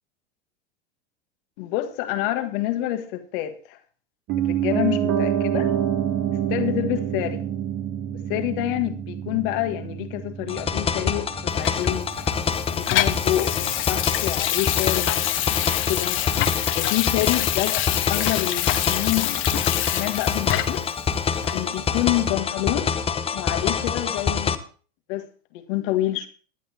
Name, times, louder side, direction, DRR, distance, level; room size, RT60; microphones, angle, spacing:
voice 1, 1.6-3.8 4.4-5.7 6.5-7.5 8.1-12.1 12.7-16.2 16.8-20.8 21.5-22.9 23.3-24.6 25.1-25.3 25.5-26.3, left 15 dB, 55° left, 1.7 m, -28 dB
Piano, 4.3-14.3 14.6-14.7, right 10 dB, 45° right, 2.1 m, -28 dB
sound 1, 10.5-24.6, left 6 dB, 20° left, 1.0 m, -26 dB
Water tap faucet / Sink (filling or washing), 11.6-20.9 21.4-21.6, left 13 dB, 40° left, 1.3 m, -26 dB
19.5 x 11.0 x 2.9 m
figure-of-eight pair, 85°, 32 cm